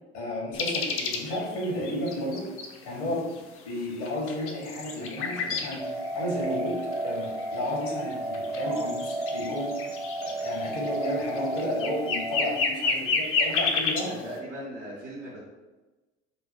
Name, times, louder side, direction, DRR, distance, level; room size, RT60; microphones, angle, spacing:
voice 1, 0.1-2.4 2.8-3.3 3.6-5.9 6.1-9.7 10.2-14.3, left 1 dB, 70° left, -2 dB, 1.3 m, -32 dB
sound 1, 0.5-2.8 3.4-3.5 3.8-5.8 6.1-14.0, left 4 dB, 40° left, 0.6 m, -30 dB
sound 2, 5.8-12.5, right 2 dB, 5° right, 0.3 m, -32 dB
voice 2, 14.1-15.4, right 1 dB, 80° right, -6 dB, 1.0 m, -39 dB
3.7 x 2.0 x 4.1 m, 1.2 s
figure-of-eight pair, 70°, 34 cm